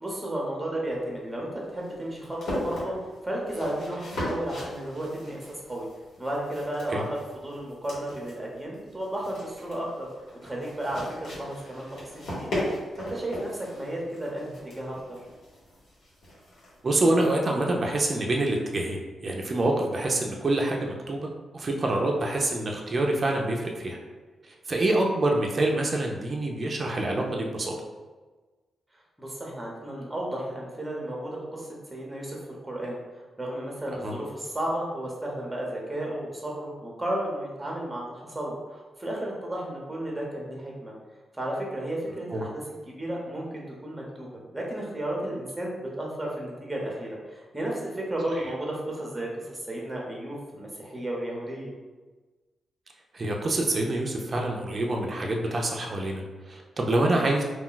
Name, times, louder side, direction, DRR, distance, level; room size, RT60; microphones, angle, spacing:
voice 1, 0.0-3.0 3.2-5.9 6.2-10.1 10.4-11.9 12.1-12.5 13.0-15.2 21.9-22.1 29.2-33.0 33.4-40.9 41.4-51.7 57.1-57.3, right 1 dB, 10° right, -3 dB, 0.8 m, -33 dB
sound 1, 0.9-17.2, left 1 dB, 90° left, 1.2 m, -38 dB
voice 2, 16.8-24.0 24.7-27.7 34.0-34.1 42.3-42.4 53.1-57.4, right 2 dB, 35° right, 0 dB, 0.4 m, -26 dB
2.3 x 2.2 x 3.8 m, 1.3 s
cardioid pair, 95°, 0 cm